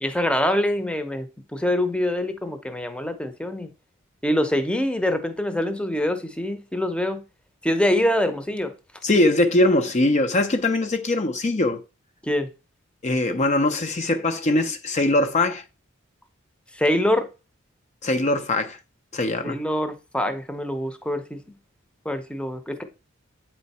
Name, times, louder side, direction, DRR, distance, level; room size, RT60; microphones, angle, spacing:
voice 1, 0.0-3.7 4.2-7.2 7.6-8.7 12.2-12.5 16.7-17.3 19.4-21.4 22.0-22.8, left 1 dB, 5° left, 0.8 m, -24 dB
voice 2, 9.0-11.8 13.0-15.6 18.0-18.8 19.1-19.6, left 2 dB, 35° left, 0.6 m, -21 dB
8.5 x 4.5 x 4.2 m
head